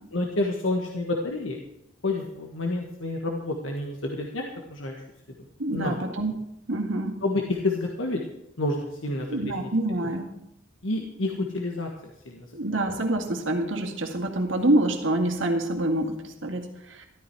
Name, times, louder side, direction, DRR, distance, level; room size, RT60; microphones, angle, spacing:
voice 1, 0.1-1.6 2.0-5.0 5.4-6.0 7.2-8.2 8.6-9.7 10.0-10.1 10.8-12.5, left 2 dB, 80° left, 1 dB, 1.5 m, -29 dB
voice 2, 5.6-7.2 9.3-10.3 12.5-17.1, right 1 dB, 70° right, 3 dB, 2.0 m, -26 dB
13.5 x 13.0 x 4.7 m, 0.81 s
head